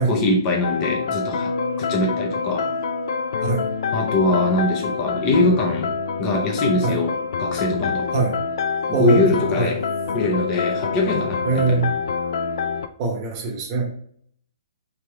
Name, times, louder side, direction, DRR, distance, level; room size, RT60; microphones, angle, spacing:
voice 1, 0.0-1.5 1.9-2.7 3.9-5.9 6.2-7.1 7.4-8.1 8.9-9.8 10.1-11.8, left 2 dB, 20° left, 0 dB, 0.7 m, -22 dB
sound 1, 0.6-12.9, left 5 dB, 60° left, 0.4 m, -26 dB
voice 2, 8.9-9.3 9.6-9.7 11.4-11.9 13.0-13.9, right 4 dB, 25° right, 1 dB, 1.0 m, -22 dB
4.4 x 3.5 x 3.4 m, 0.63 s
hypercardioid pair, 165°, 2 cm